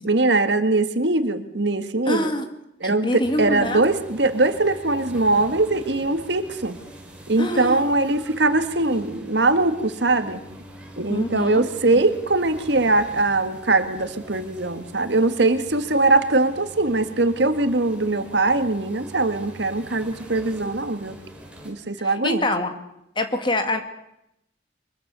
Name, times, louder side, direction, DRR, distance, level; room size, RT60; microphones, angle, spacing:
voice 1, 0.0-2.3 2.8-6.8 7.3-10.4 11.0-21.2 21.7-22.5, right 2 dB, 70° right, 9 dB, 1.8 m, -21 dB
voice 2, 2.1-2.5 2.8-3.8 7.4-7.8 11.1-11.6 22.0-22.7 23.2-23.8, left 1 dB, 25° left, 7 dB, 2.2 m, -25 dB
sound 1, 3.2-21.7, equal, 5° right, 5.2 m, -43 dB
24.0 x 22.0 x 6.9 m, 0.81 s
head